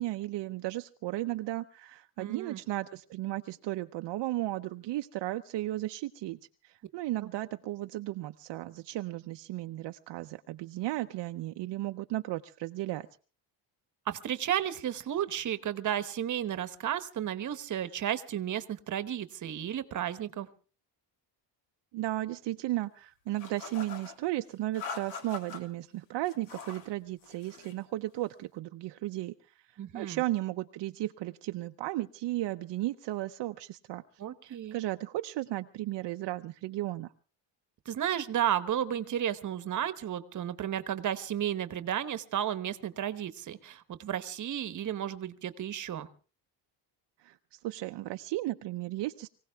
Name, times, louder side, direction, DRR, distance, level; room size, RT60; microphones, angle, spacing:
voice 1, 0.0-6.4 6.6-13.1 21.9-29.3 29.9-34.0 34.4-37.1 47.2-49.3, right 16 dB, 65° right, 7 dB, 0.7 m, -35 dB
voice 2, 2.2-2.6 7.2-7.3 14.1-20.5 29.8-30.2 34.2-34.8 37.8-46.1, right 10 dB, 40° right, 13 dB, 1.1 m, -33 dB
sound 1, 23.4-24.2 24.7-25.6 26.3-26.9 27.2-27.8, left 5 dB, 90° left, 3.0 m, -43 dB
23.5 x 17.0 x 3.5 m, 0.38 s
cardioid pair, 150°, 45 cm